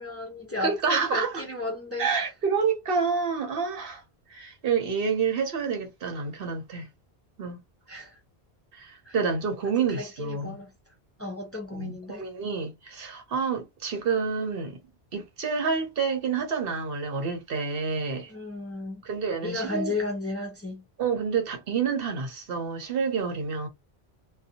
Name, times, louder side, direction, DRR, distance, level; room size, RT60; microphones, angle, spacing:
voice 1, 0.0-2.3 7.9-8.2 9.0-9.2 9.9-10.7 11.2-12.2 18.3-19.0 19.4-20.8, left 2 dB, 15° left, 0.8 m, -34 dB
voice 2, 0.6-1.4 2.0-4.0 4.3-6.9 7.4-7.6 8.7-10.6 11.7-14.8 15.1-18.3 19.0-19.9 21.0-23.7, right 5 dB, 65° right, 0.9 m, -28 dB
2.6 x 2.3 x 2.7 m
omnidirectional pair, 1.1 m